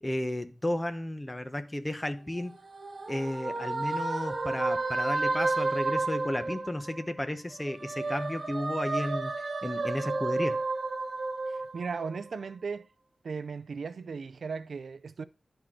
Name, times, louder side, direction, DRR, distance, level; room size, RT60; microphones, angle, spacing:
voice 1, 0.0-2.6 3.1-9.3 9.6-10.6, left 1 dB, 20° left, 1.0 m, -33 dB
sound 1, 2.2-7.1 7.5-12.3, right 3 dB, 60° right, 1.3 m, -32 dB
voice 2, 11.5-12.9 13.2-15.2, right 5 dB, 75° right, 0.4 m, -37 dB
11.5 x 4.6 x 3.8 m
wide cardioid pair, 80°, 0 cm